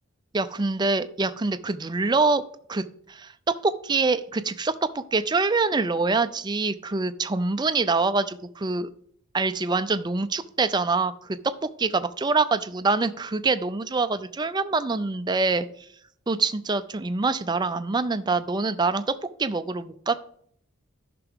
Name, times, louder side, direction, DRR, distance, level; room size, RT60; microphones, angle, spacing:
voice 1, 0.3-2.4 2.7-8.9 9.3-11.1 11.4-15.7 16.3-20.1, right 3 dB, 20° right, 11 dB, 0.4 m, -25 dB
14.0 x 5.8 x 3.6 m, 0.65 s
head